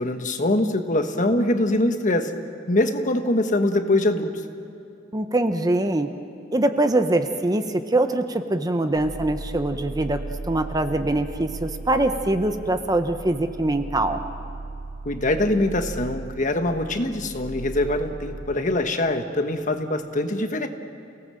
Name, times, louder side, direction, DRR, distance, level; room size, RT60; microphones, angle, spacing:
voice 1, 0.0-2.3 2.7-4.3 15.0-20.7, left 1 dB, 40° left, 7 dB, 1.4 m, -23 dB
voice 2, 5.1-6.1 6.5-10.2 10.5-14.2, right 1 dB, 20° right, 8 dB, 0.9 m, -23 dB
sound 1, 8.9-18.4, right 3 dB, 45° right, 3.4 m, -36 dB
28.5 x 18.0 x 7.7 m, 2.8 s
head